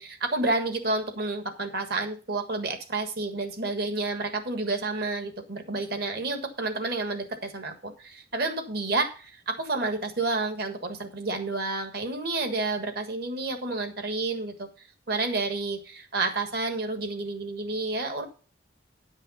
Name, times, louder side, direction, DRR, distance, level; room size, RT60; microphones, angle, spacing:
voice 1, 0.0-14.7 15.1-18.3, right 3 dB, 55° right, 6 dB, 1.5 m, -30 dB
10.5 x 5.5 x 5.5 m, 0.37 s
head